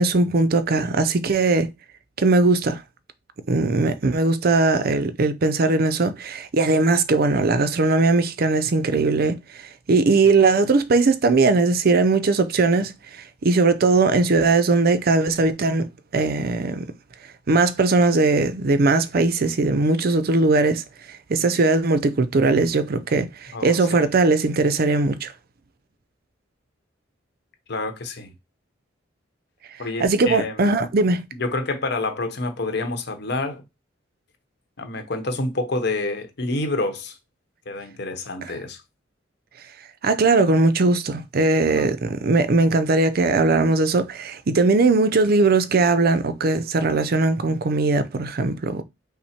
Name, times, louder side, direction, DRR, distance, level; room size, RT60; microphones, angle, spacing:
voice 1, 0.0-1.7 2.2-2.8 3.5-9.4 9.9-12.9 13.4-16.9 17.5-20.8 21.1-25.3 30.0-31.3 40.0-48.8, right 3 dB, 55° right, 0.5 m, -19 dB
voice 2, 23.5-24.1 27.7-28.3 29.8-30.6 31.3-33.6 34.8-37.2 37.7-38.8 41.7-41.9, left 2 dB, 60° left, 0.9 m, -28 dB
5.8 x 2.1 x 4.3 m
head